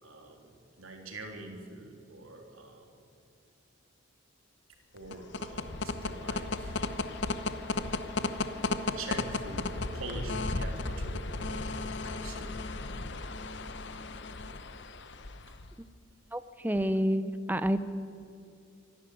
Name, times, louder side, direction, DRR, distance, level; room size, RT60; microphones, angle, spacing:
voice 1, 0.0-2.9 4.9-6.8 8.9-12.6 13.1-13.5 15.4-15.6, right 2 dB, 85° right, 3 dB, 3.4 m, -45 dB
sound 1, 5.0-15.7, left 3 dB, 55° left, 1.0 m, -35 dB
voice 2, 16.3-17.8, equal, 10° right, 13 dB, 0.7 m, -28 dB
25.5 x 11.5 x 9.3 m, 2.5 s
head